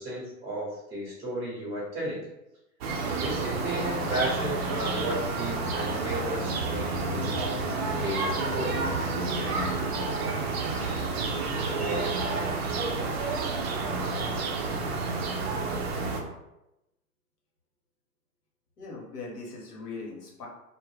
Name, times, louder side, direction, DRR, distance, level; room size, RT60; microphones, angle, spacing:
voice 1, 0.0-2.3 3.0-9.1 9.4-9.5, right 1 dB, 5° right, -6 dB, 0.8 m, -34 dB
sound 1, 2.8-16.2, right 3 dB, 45° right, 0.5 m, -30 dB
voice 2, 18.8-20.5, left 3 dB, 75° left, -2 dB, 1.0 m, -40 dB
2.2 x 2.1 x 3.3 m, 0.90 s
figure-of-eight pair, 110°, 47 cm